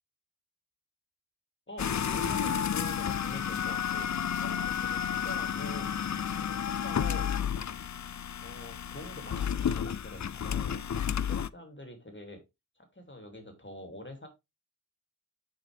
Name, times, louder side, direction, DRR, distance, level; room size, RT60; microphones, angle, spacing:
voice 1, 1.7-5.9 6.4-7.3 8.4-10.9 11.3-12.4 12.8-14.3, left 1 dB, 30° left, 5 dB, 2.9 m, -46 dB
sound 1, 1.8-11.5, left 8 dB, 55° left, 0.5 m, -31 dB
9.4 x 5.6 x 3.5 m, 0.23 s
wide cardioid pair, 65°, 36 cm